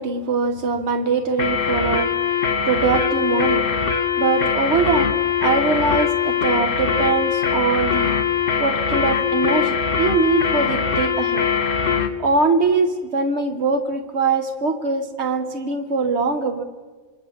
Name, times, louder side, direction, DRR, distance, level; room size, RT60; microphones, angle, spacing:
voice 1, 0.0-2.1 2.6-3.7 4.2-8.2 8.6-11.5 12.2-16.6, right 4 dB, 75° right, 6 dB, 1.5 m, -22 dB
sound 1, 1.4-12.1, left 6 dB, 65° left, 1.7 m, -21 dB
27.0 x 20.5 x 7.2 m, 1.4 s
omnidirectional pair, 1.1 m